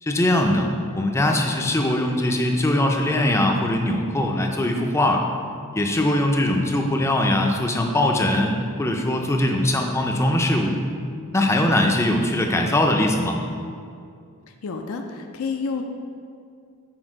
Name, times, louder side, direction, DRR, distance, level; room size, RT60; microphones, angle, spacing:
voice 1, 0.0-5.2 5.7-10.8 11.3-13.4, left 1 dB, 10° left, 2 dB, 0.4 m, -21 dB
voice 2, 14.5-15.8, left 4 dB, 75° left, 4 dB, 0.4 m, -29 dB
6.2 x 4.2 x 4.9 m, 2.4 s
head